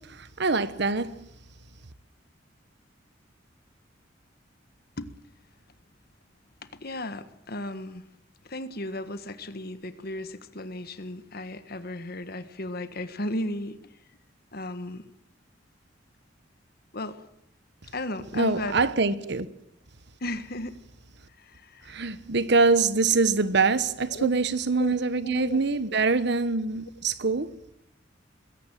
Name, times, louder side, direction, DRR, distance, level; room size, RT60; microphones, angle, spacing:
voice 1, 0.4-1.1 18.3-19.5 21.9-27.5, right 4 dB, 65° right, 1.2 m, -24 dB
voice 2, 6.6-8.1 8.4-13.9 14.5-15.1 16.9-17.2 17.9-18.8 20.2-20.8 21.4-22.0 24.1-24.3 24.8-24.9 25.2-25.6, left 1 dB, 55° left, 1.6 m, -35 dB
21.5 x 16.5 x 9.0 m
head